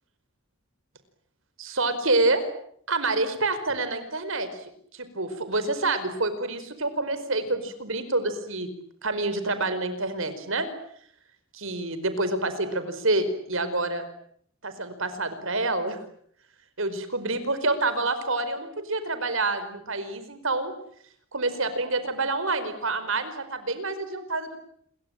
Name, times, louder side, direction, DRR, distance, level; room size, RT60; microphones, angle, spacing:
voice 1, 1.6-2.4 2.9-4.6 4.9-8.7 9.0-10.7 11.5-14.1 14.6-16.0 16.8-20.7 21.3-24.6, right 2 dB, 70° right, 11 dB, 4.8 m, -27 dB
28.0 x 23.0 x 9.0 m, 0.67 s
head